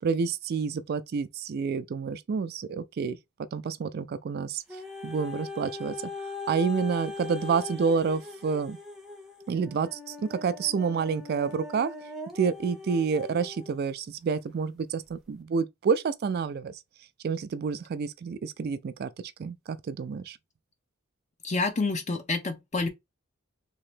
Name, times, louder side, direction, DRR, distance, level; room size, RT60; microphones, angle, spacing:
voice 1, 0.0-3.2 3.5-5.9 6.5-8.8 9.5-11.9 12.3-16.8 17.2-19.1 19.4-20.4, right 5 dB, 50° right, 0.3 m, -29 dB
sound 1, 4.7-13.8 14.5-14.6, left 3 dB, ahead, 0.7 m, -40 dB
voice 2, 21.4-22.9, left 3 dB, 35° left, 0.7 m, -28 dB
3.0 x 2.8 x 3.2 m
head